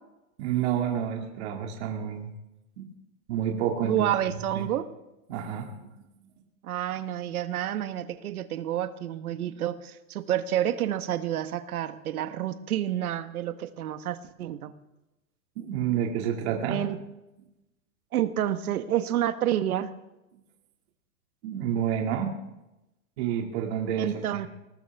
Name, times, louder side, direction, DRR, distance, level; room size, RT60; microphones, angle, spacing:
voice 1, 0.4-2.3 2.8-2.9 3.3-4.7 5.3-5.9 15.6-16.8 21.4-22.3 23.2-24.1, right 9 dB, 50° right, 1 dB, 2.4 m, -29 dB
voice 2, 3.8-4.8 6.6-14.7 16.7-17.0 18.1-19.9 24.0-24.5, right 11 dB, 85° right, 10 dB, 1.3 m, -29 dB
21.0 x 19.0 x 3.5 m, 0.96 s
supercardioid pair, 165°, 43 cm